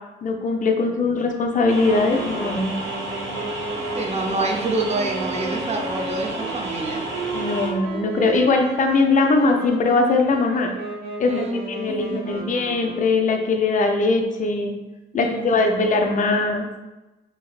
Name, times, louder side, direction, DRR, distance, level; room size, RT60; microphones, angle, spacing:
voice 1, 0.2-2.8 7.3-10.8 11.2-14.8 15.1-16.7, left 3 dB, 40° left, 3 dB, 0.5 m, -21 dB
voice 2, 0.7-1.2 3.9-7.1 11.3-11.6 11.9-12.8 15.2-15.8, right 2 dB, 35° right, 2 dB, 0.6 m, -28 dB
sound 1, 1.7-7.7, right 1 dB, 90° right, 1.0 m, -31 dB
Wind instrument woodwind instrument, 1.8-13.5, right 3 dB, 55° right, 1.1 m, -34 dB
3.2 x 2.8 x 2.3 m, 1.1 s
cardioid pair, 90°, 20 cm